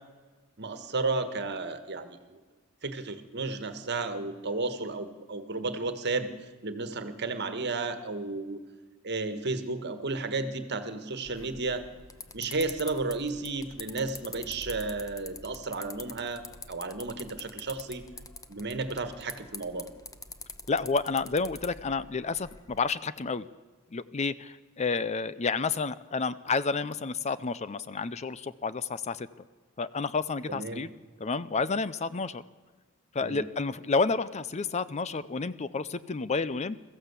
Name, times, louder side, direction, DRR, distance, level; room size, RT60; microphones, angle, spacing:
voice 1, 0.6-2.4 2.8-6.3 6.6-8.6 9.0-11.8 12.3-16.4 16.7-18.1 18.5-19.9 30.5-30.8 33.2-33.4, right 3 dB, 50° right, 10 dB, 1.6 m, -33 dB
sound 1, 11.3-22.8, left 4 dB, 15° left, 0.9 m, -45 dB
voice 2, 20.7-23.5 23.9-29.3 29.8-30.9 31.2-32.4 33.1-36.8, left 4 dB, 30° left, 16 dB, 0.5 m, -30 dB
22.0 x 14.5 x 8.2 m, 1.3 s
head